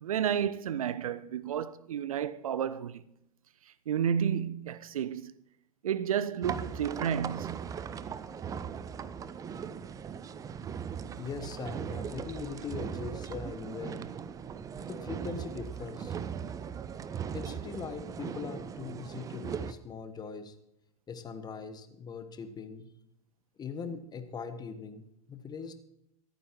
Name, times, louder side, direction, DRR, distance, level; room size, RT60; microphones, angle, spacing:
voice 1, 0.0-3.0 3.9-5.3 5.8-7.5, right 8 dB, 65° right, 0.5 m, -31 dB
sound 1, 6.4-19.7, right 7 dB, 20° right, 0.5 m, -39 dB
voice 2, 11.2-14.0 14.8-16.2 17.3-20.5 21.1-22.9 23.6-25.7, left 5 dB, 20° left, 1.2 m, -41 dB
24.5 x 9.2 x 3.1 m
figure-of-eight pair, 90°, 19 cm